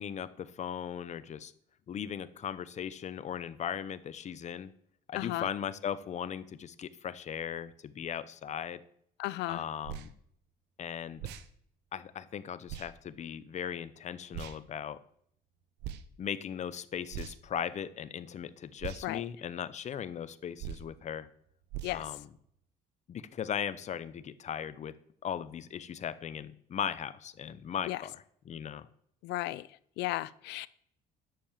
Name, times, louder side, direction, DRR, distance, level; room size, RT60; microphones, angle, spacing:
voice 1, 0.0-1.5 1.9-4.7 5.1-8.8 9.5-10.1 10.8-11.3 11.9-15.0 16.2-21.3 21.9-22.3 23.1-25.0 25.2-28.9, left 8 dB, 45° left, 14 dB, 0.8 m, -38 dB
voice 2, 5.1-5.5 9.2-9.6 19.0-19.2 21.8-22.0 27.9-28.0 29.2-29.7 30.0-30.7, left 18 dB, 85° left, 19 dB, 0.5 m, -34 dB
sound 1, 9.8-10.1 11.2-11.5 12.7-12.9 14.3-14.6 15.8-16.0 17.1-17.5 18.8-19.0 20.6-20.9 21.7-22.0, right 10 dB, 85° right, 0.9 m, -40 dB
10.5 x 6.8 x 7.4 m, 0.66 s
cardioid pair, 110°, 17 cm